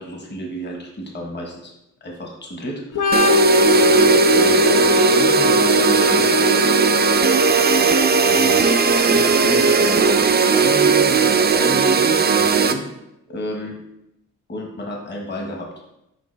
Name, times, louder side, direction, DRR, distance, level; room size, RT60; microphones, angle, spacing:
voice 1, 0.0-1.7 2.0-3.3 3.7-6.7 7.2-7.4 8.3-8.8 9.0-12.8 13.3-13.8 14.5-15.7, equal, 35° left, 0 dB, 1.2 m, -31 dB
Organ, 2.9-10.4, left 4 dB, 80° left, 0.8 m, -21 dB
sound 1, 3.1-12.7, right 5 dB, 30° right, 0.4 m, -17 dB
7.1 x 5.5 x 3.3 m, 0.86 s
wide cardioid pair, 150°, 31 cm